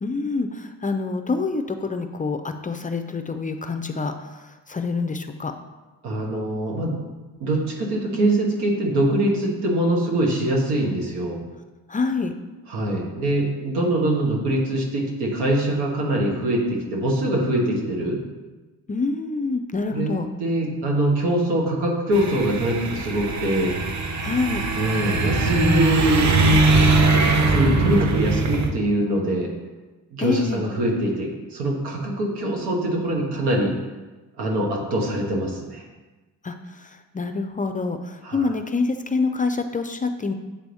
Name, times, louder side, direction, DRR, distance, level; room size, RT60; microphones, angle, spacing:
voice 1, 0.0-5.5 11.9-12.3 18.9-20.3 24.2-24.6 30.2-30.6 36.4-40.3, left 3 dB, 20° left, 7 dB, 0.4 m, -26 dB
voice 2, 6.0-6.9 7.4-11.4 12.7-18.2 19.9-23.7 24.7-26.4 27.4-29.5 30.1-33.7 34.4-35.8 38.2-38.5, right 1 dB, 85° right, -1 dB, 1.4 m, -23 dB
sound 1, 22.1-28.7, right 2 dB, 45° right, 0.8 m, -21 dB
7.6 x 3.4 x 4.0 m, 1.2 s
supercardioid pair, 65°, 39 cm